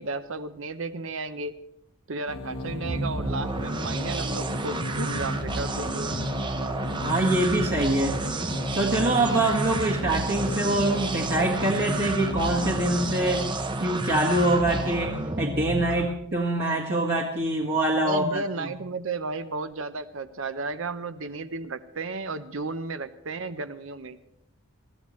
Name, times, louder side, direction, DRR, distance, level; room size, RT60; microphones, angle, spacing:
voice 1, 0.0-1.6 2.1-6.1 15.9-16.1 18.0-24.2, right 3 dB, 65° right, 11 dB, 0.8 m, -33 dB
sound 1, 2.3-13.5, left 2 dB, 90° left, 1.4 m, -36 dB
sound 2, 2.5-16.3, right 2 dB, 20° right, 0.7 m, -31 dB
voice 2, 7.0-18.7, right 1 dB, 50° right, -3 dB, 1.7 m, -25 dB
23.0 x 14.5 x 3.2 m, 0.80 s
head